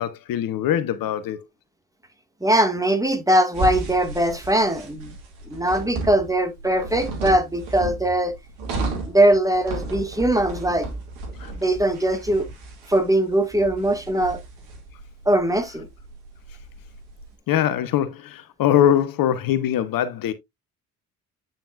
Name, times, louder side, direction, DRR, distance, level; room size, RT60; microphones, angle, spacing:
voice 1, 0.0-1.4 11.4-11.5 17.5-20.3, left 10 dB, 55° left, 1.0 m, -22 dB
voice 2, 2.4-5.1 5.5-8.3 9.1-10.9 11.6-12.5 12.9-14.4 15.2-15.9, right 1 dB, 10° right, 1.8 m, -21 dB
sound 1, 3.5-17.3, right 2 dB, 75° right, 2.5 m, -34 dB
8.9 x 5.7 x 2.4 m
hypercardioid pair, 50°, 41 cm